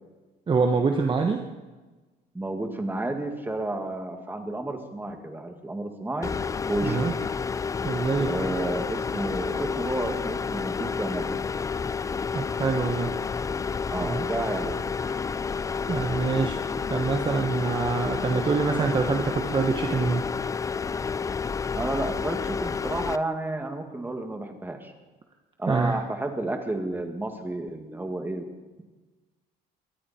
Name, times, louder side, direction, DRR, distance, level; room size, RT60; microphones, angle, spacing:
voice 1, 0.5-1.4 6.8-7.1 7.8-8.6 12.3-13.1 14.0-14.3 15.9-16.6 16.9-20.3 25.7-26.0, right 4 dB, 30° right, 4 dB, 1.2 m, -25 dB
voice 2, 2.3-6.3 6.7-7.0 8.2-11.4 13.9-14.8 21.7-24.9 25.6-28.4, right 2 dB, 10° right, 4 dB, 2.2 m, -31 dB
sound 1, 6.2-23.2, left 5 dB, 20° left, 0.4 m, -30 dB
22.5 x 14.0 x 4.4 m, 1.2 s
cardioid pair, 110°, 17 cm